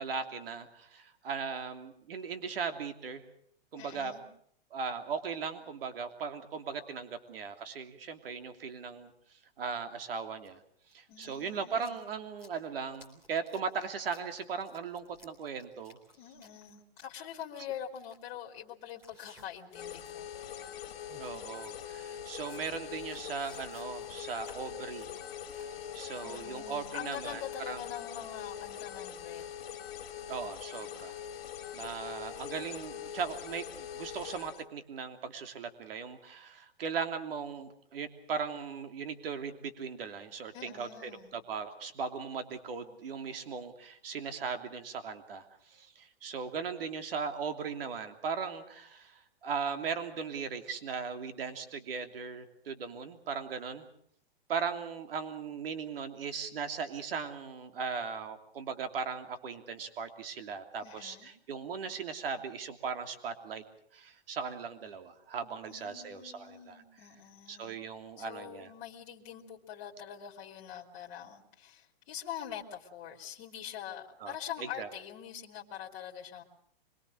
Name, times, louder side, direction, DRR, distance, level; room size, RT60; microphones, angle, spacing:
voice 1, 0.0-3.2 3.7-4.1 4.7-9.1 9.6-10.6 10.9-16.0 21.2-25.1 25.5-27.8 30.3-31.2 31.7-53.9 54.5-63.6 63.9-66.8 67.5-68.7 74.2-74.9, right 5 dB, 70° right, 8 dB, 3.0 m, -38 dB
voice 2, 3.8-4.3 11.1-12.0 16.2-20.3 20.6-20.7 26.2-29.5 40.5-41.4 60.8-61.3 65.7-67.8 68.2-76.4, left 10 dB, 30° left, -1 dB, 2.6 m, -44 dB
sound 1, 8.4-8.5 10.4-10.5 10.8-19.7 20.0-20.3 20.7-20.8 21.1-21.3 21.7-21.8 22.2-25.7, left 1 dB, 10° right, 3.7 m, -59 dB
sound 2, 19.7-34.6, left 10 dB, 75° left, 2.5 m, -43 dB
25.0 x 22.5 x 6.5 m, 0.64 s
hypercardioid pair, 170°, 30 cm